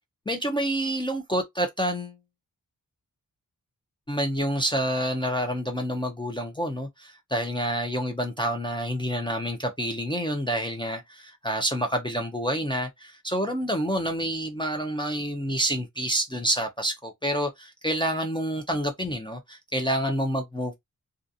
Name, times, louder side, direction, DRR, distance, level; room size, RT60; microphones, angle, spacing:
voice 1, 0.3-2.2 4.1-20.7, equal, 15° left, 0.4 m, -28 dB
2.4 x 2.4 x 2.6 m
wide cardioid pair, 135°, 35 cm